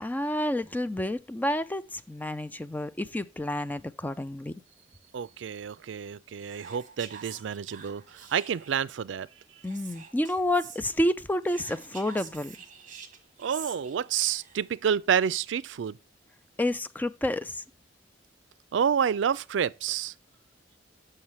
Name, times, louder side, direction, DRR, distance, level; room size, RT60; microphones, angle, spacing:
voice 1, 0.0-4.5 9.6-12.6 16.6-17.6, left 1 dB, 10° left, 0.4 m, -29 dB
voice 2, 5.1-9.3 13.4-16.0 18.7-20.1, right 8 dB, 80° right, 0.4 m, -29 dB
Whispering, 6.4-8.9 9.6-10.8 11.4-14.7, right 6 dB, 45° right, 1.2 m, -47 dB
7.2 x 6.6 x 3.0 m
head